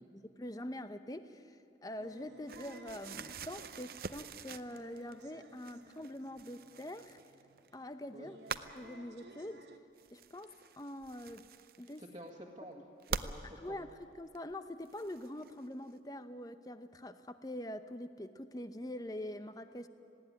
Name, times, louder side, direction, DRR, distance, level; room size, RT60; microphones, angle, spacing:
voice 1, 0.0-7.2 7.7-8.4 8.8-9.7 10.1-11.4 11.8-12.0 12.7-12.8 13.6-19.9, left 1 dB, 20° left, 10 dB, 0.8 m, -44 dB
Good-Bye My love, 2.0-9.8, right 2 dB, 75° right, 1.4 m, -57 dB
sound 1, 2.5-5.3 5.6-7.7 8.5-8.8 10.0-12.3 13.0-13.3 14.3-14.4 14.8-15.7, right 5 dB, 55° right, 0.6 m, -45 dB
voice 2, 12.0-12.8 13.2-13.8, equal, 25° right, -3 dB, 1.9 m, -50 dB
19.0 x 17.0 x 9.9 m, 2.7 s
head